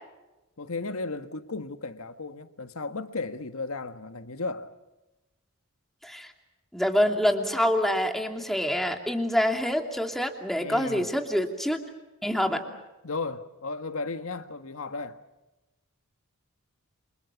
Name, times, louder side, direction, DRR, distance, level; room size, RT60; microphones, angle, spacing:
voice 1, 0.6-4.7 10.5-11.1 12.5-12.6 13.0-15.2, left 3 dB, 75° left, 1.6 m, -35 dB
voice 2, 6.7-11.8 12.2-12.6, equal, ahead, 2.7 m, -26 dB
28.0 x 27.5 x 5.9 m
head